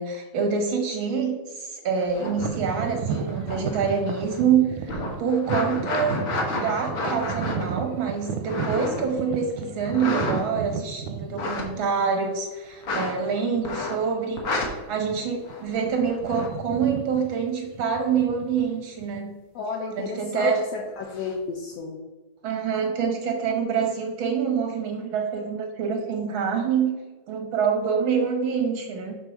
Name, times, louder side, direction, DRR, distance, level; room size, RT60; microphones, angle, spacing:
voice 1, 0.0-6.2 6.5-19.3 20.0-20.6 22.4-26.9 27.3-29.2, right 6 dB, 70° right, 4 dB, 1.2 m, -26 dB
sound 1, 2.0-4.5 4.8-9.1 9.9-10.8 11.2-11.6 12.8-13.2 13.6-14.1 14.4-14.7 15.4-16.5 21.0-21.3, left 2 dB, 50° left, 1.7 m, -31 dB
sound 2, 2.4-12.2 12.8-12.9 13.6-13.8 14.1-14.3 15.0-15.5 15.8-19.2, right 6 dB, 85° right, 2.0 m, -33 dB
voice 2, 19.6-22.0, left 4 dB, 70° left, 0 dB, 1.8 m, -31 dB
8.1 x 4.0 x 5.9 m, 1.2 s
omnidirectional pair, 3.3 m